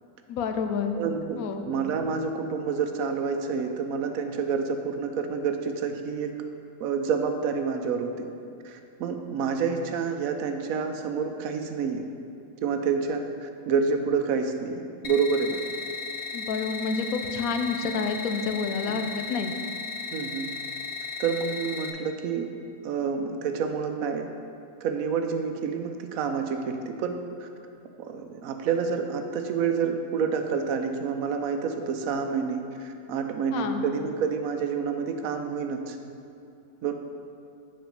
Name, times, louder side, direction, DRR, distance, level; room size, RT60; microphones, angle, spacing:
voice 1, 0.3-0.9 1.4-1.6 16.3-19.5 33.5-33.8, left 5 dB, 85° left, 6 dB, 1.1 m, -29 dB
voice 2, 0.9-1.4 1.6-6.3 6.8-8.3 8.6-12.1 12.6-15.6 20.1-20.5 21.2-22.5 22.8-24.3 24.8-27.5 28.0-36.0 36.8-36.9, right 5 dB, 85° right, 5 dB, 1.1 m, -28 dB
sound 1, 15.0-21.9, left 5 dB, 55° left, 0.7 m, -35 dB
7.3 x 5.1 x 5.3 m, 2.7 s
omnidirectional pair, 1.4 m